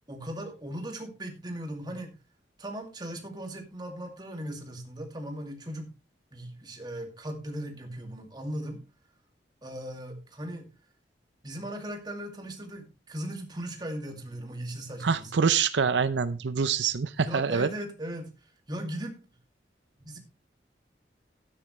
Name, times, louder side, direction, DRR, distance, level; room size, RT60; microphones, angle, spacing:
voice 1, 0.1-2.2 2.6-5.9 6.3-8.8 9.6-10.7 11.4-15.3 17.2-18.3 18.7-19.2 20.0-20.2, right 1 dB, 25° right, 2.3 m, -38 dB
voice 2, 15.0-17.7, right 6 dB, 85° right, 0.6 m, -25 dB
12.5 x 9.7 x 3.2 m
head